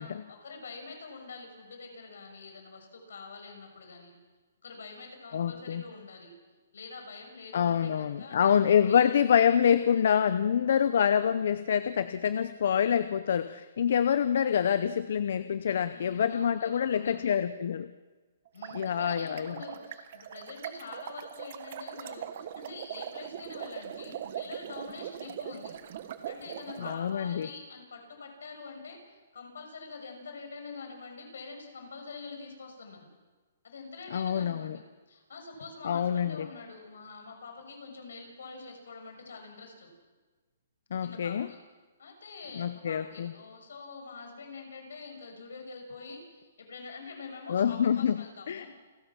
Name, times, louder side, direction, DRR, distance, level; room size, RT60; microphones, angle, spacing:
voice 1, 0.0-4.2 4.6-6.3 6.7-9.1 15.9-17.2 18.5-25.8 26.3-33.1 33.6-39.9 41.0-41.6 42.0-48.7, left 4 dB, 85° left, 3 dB, 6.2 m, -45 dB
voice 2, 5.3-5.8 7.5-17.9 18.7-19.6 26.8-27.5 34.1-34.8 35.8-36.5 40.9-41.5 42.5-43.3 47.5-48.7, left 8 dB, 60° left, 13 dB, 0.7 m, -26 dB
sound 1, 18.5-27.0, right 10 dB, 45° right, 1.3 m, -41 dB
29.0 x 16.0 x 6.0 m, 1.3 s
hypercardioid pair, 165°, 0 cm